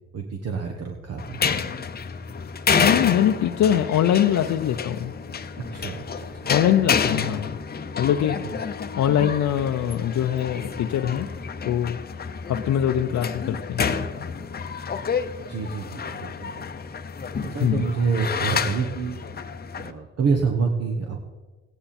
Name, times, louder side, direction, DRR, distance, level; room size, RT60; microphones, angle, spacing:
voice 1, 0.1-1.4 5.7-6.2 8.4-8.5 15.5-16.5 17.4-19.2 19.7-21.2, right 5 dB, 55° right, 2 dB, 1.4 m, -27 dB
sound 1, 1.2-19.9, left 6 dB, 30° left, 0.8 m, -29 dB
voice 2, 2.8-5.1 6.5-7.5 8.0-8.4 9.0-11.3 11.7-12.0 12.5-13.8 17.6-17.8, left 10 dB, 70° left, 4 dB, 0.7 m, -22 dB
16.0 x 10.0 x 4.3 m, 1.3 s
cardioid pair, 90°, 30 cm